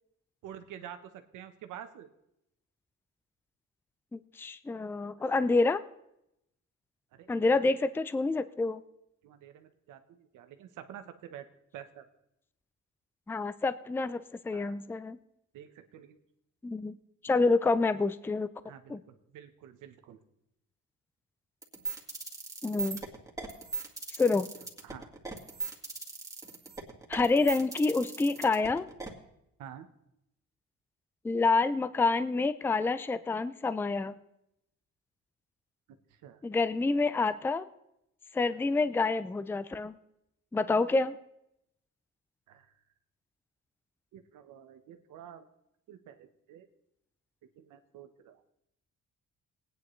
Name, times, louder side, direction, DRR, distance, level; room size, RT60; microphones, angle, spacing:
voice 1, 0.4-2.1 7.1-7.3 7.7-7.8 9.2-12.1 14.5-14.7 15.5-16.2 17.3-17.4 18.6-20.2 24.8-25.1 29.6-29.9 36.1-36.4 38.5-38.6 42.5-42.7 44.1-45.5 45.9-46.7 47.6-48.4, right 10 dB, 85° right, 8 dB, 1.0 m, -49 dB
voice 2, 4.1-5.8 7.3-8.8 13.3-15.2 16.6-17.0 17.2-18.5 18.9-19.0 22.6-23.0 24.2-24.5 27.1-28.9 31.2-34.2 36.4-37.7 38.3-40.0 40.5-41.2, left 3 dB, 10° left, 14 dB, 0.4 m, -28 dB
sound 1, 21.6-29.1, right 4 dB, 10° right, 1.9 m, -38 dB
19.0 x 9.4 x 3.1 m, 0.82 s
cardioid pair, 90°, 30 cm